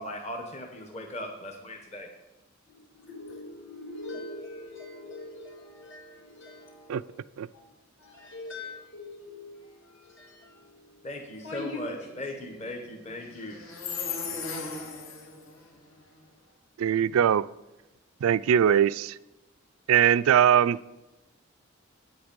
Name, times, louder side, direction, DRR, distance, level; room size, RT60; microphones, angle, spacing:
voice 1, 0.0-2.1 11.0-15.0, left 3 dB, 30° left, 3 dB, 0.9 m, -37 dB
voice 2, 2.7-7.2 7.5-7.7 8.0-12.7 13.1-13.3, left 2 dB, 65° left, -1 dB, 2.5 m, -43 dB
sound 1, 11.9-16.2, left 1 dB, 85° left, 2.1 m, -43 dB
voice 3, 16.8-17.5 18.2-19.2 19.9-20.8, right 9 dB, 75° right, 19 dB, 0.3 m, -21 dB
8.6 x 8.0 x 5.2 m, 1.0 s
head